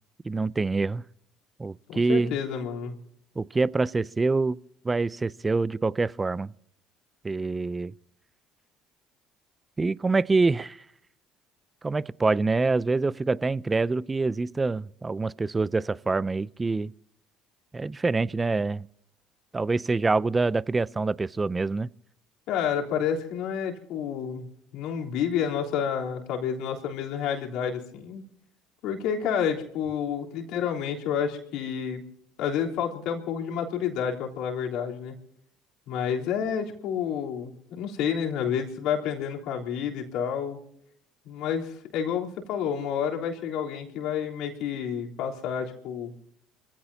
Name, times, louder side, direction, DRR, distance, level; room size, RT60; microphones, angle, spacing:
voice 1, 0.2-1.0 1.6-2.4 3.4-4.6 4.8-6.5 7.2-7.9 9.8-10.8 11.8-16.9 17.7-18.9 19.5-21.9, right 3 dB, 25° right, 0.5 m, -25 dB
voice 2, 1.9-3.0 22.5-24.4 24.7-28.2 28.8-32.0 32.4-35.1 35.9-40.6 41.2-46.1, left 8 dB, 70° left, 3.5 m, -29 dB
26.0 x 16.0 x 2.8 m
hypercardioid pair, 70°, 0 cm